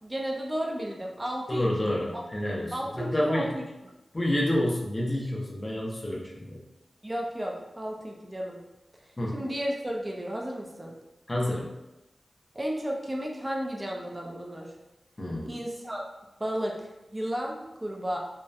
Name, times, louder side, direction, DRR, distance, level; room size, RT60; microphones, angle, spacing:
voice 1, 0.0-2.2 2.7-3.6 7.0-8.6 9.3-10.9 12.5-14.7 15.5-16.0 16.4-18.2, equal, 25° right, -1 dB, 0.3 m, -33 dB
voice 2, 1.5-3.6 4.1-6.6 9.2-9.4 11.3-11.7 15.2-15.5, left 1 dB, 35° left, -3 dB, 0.6 m, -29 dB
2.7 x 2.0 x 2.3 m, 0.98 s
wide cardioid pair, 70°, 0 cm